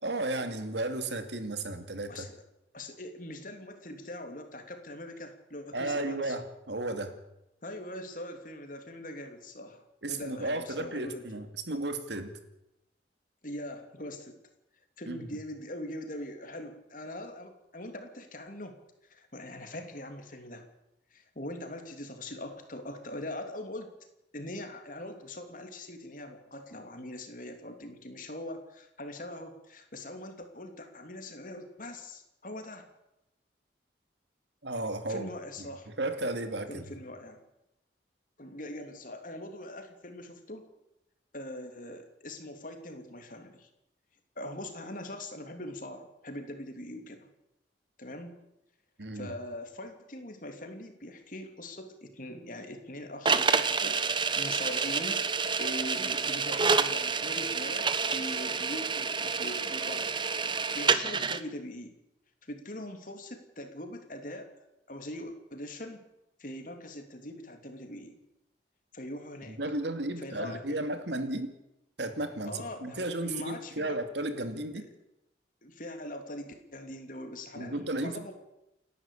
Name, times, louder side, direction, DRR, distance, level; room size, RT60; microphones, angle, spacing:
voice 1, 0.0-2.2 5.7-7.2 10.0-12.3 15.1-15.2 34.6-35.3 35.6-35.7 36.0-36.9 49.0-49.3 69.5-71.5 72.0-74.9 77.6-78.3, right 2 dB, 75° right, 8 dB, 2.4 m, -34 dB
voice 2, 2.7-6.4 7.6-11.3 13.4-14.4 15.0-18.8 19.1-20.7 21.1-23.9 24.3-32.9 35.1-35.9 36.7-37.4 38.4-40.7 41.3-43.7 44.4-47.3 48.0-48.4 49.1-55.3 55.6-60.2 60.7-61.9 62.4-64.5 64.9-66.0 66.4-68.2 68.9-69.6 70.2-70.8 72.4-74.0 74.5-74.9 75.6-78.3, left 1 dB, 45° left, 6 dB, 3.0 m, -42 dB
sound 1, 53.3-61.4, right 5 dB, 25° right, 0.9 m, -28 dB
29.0 x 11.0 x 8.6 m, 0.90 s
head